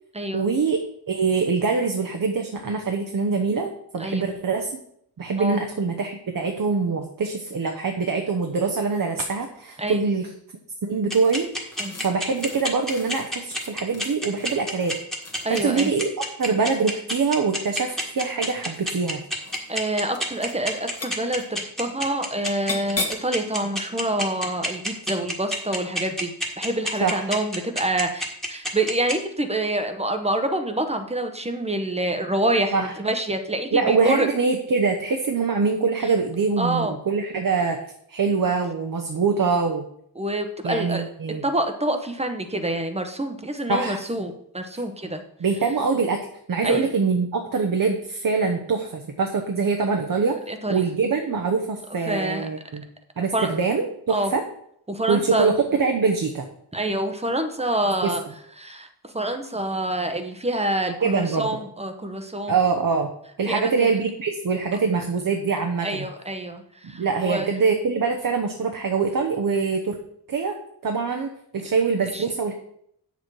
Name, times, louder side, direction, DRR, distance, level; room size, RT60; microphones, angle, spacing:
voice 1, 0.3-0.8 1.1-4.7 5.2-10.3 10.8-11.5 12.0-15.0 15.5-16.1 16.4-19.2 27.0-27.2 32.7-32.9 33.7-37.8 38.1-39.8 40.6-41.4 43.7-44.0 45.4-46.2 46.5-50.4 50.7-52.8 53.2-54.4 55.1-56.5 58.0-58.1 61.0-61.5 62.5-63.1 63.4-66.1 66.8-70.0 70.3-70.6 70.8-72.5, right 4 dB, 55° right, 4 dB, 0.9 m, -24 dB
sound 1, 11.1-16.1 17.4-18.0 18.7-19.1 19.4-19.8 20.1-20.6 20.8-21.5 22.5-23.3, left 3 dB, 35° left, 1.4 m, -37 dB
sound 2, 11.1-29.1, equal, ahead, 1.5 m, -27 dB
voice 2, 15.4-15.9 19.7-34.3 36.6-36.9 40.2-41.0 41.4-45.2 46.6-46.9 50.5-50.9 52.1-52.5 53.3-53.5 54.1-54.3 54.9-55.5 56.7-58.2 58.6-62.5 63.5-63.9 65.8-67.5 72.1-72.2, right 1 dB, 15° right, 7 dB, 0.9 m, -27 dB
9.3 x 6.9 x 4.7 m, 0.71 s
wide cardioid pair, 170°, 41 cm